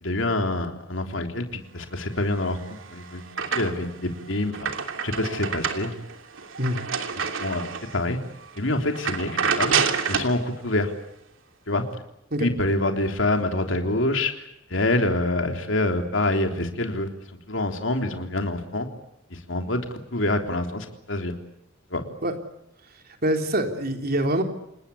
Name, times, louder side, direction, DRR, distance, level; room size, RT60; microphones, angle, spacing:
voice 1, 0.0-2.6 2.9-3.2 3.5-4.7 5.0-6.0 7.4-8.2 8.6-9.8 10.1-10.9 11.7-11.8 12.4-14.3 14.7-17.1 17.5-18.9 19.3-21.4 21.9-22.0, left 2 dB, 70° left, 5 dB, 3.5 m, -26 dB
sound 1, 2.4-4.0 4.4-8.0 8.4-8.6 8.9-10.4, right 6 dB, 75° right, 2.9 m, -28 dB
voice 2, 23.2-24.4, right 1 dB, 50° right, 5 dB, 3.6 m, -24 dB
28.5 x 20.0 x 8.4 m, 0.83 s
head